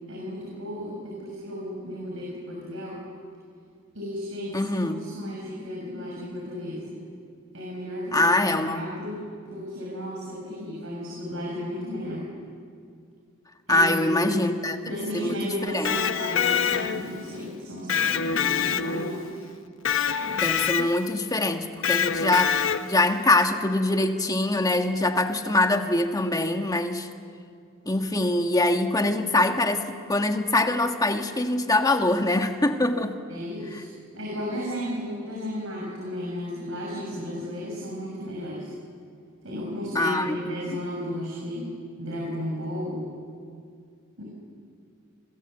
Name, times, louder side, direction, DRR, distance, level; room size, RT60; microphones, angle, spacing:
voice 1, 0.1-3.0 3.9-7.0 7.5-9.2 9.5-12.2 13.7-14.3 14.9-19.5 33.3-38.7 39.4-41.7 42.0-43.1 44.2-44.3, equal, 65° right, -3 dB, 6.4 m, -34 dB
voice 2, 4.5-5.0 8.1-8.9 13.7-14.8 15.1-16.0 20.3-22.6 22.8-27.1 27.8-33.2 33.7-33.8 39.9-40.6, left 2 dB, 15° left, 6 dB, 1.5 m, -24 dB
Electric guitar, 15.7-17.2 17.9-19.3 19.8-21.1 21.8-23.1, left 7 dB, 65° left, 0.9 m, -25 dB
28.5 x 22.0 x 7.9 m, 2.2 s
head